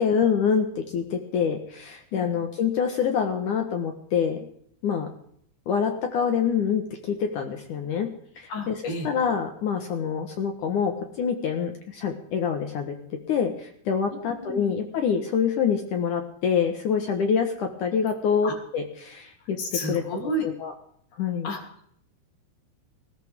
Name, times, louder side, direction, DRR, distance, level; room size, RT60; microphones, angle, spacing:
voice 1, 0.0-4.4 4.8-5.1 5.7-8.1 8.4-8.8 9.0-10.9 11.2-13.0 13.3-19.6 19.9-20.0 20.4-20.7 21.2-21.5, left 7 dB, 75° left, 5 dB, 1.9 m, -26 dB
voice 2, 8.5-9.1 14.1-14.8 18.4-18.5 19.6-20.5 21.4-21.6, equal, 45° left, 1 dB, 4.3 m, -32 dB
19.0 x 17.5 x 3.6 m, 0.64 s
omnidirectional pair, 5.6 m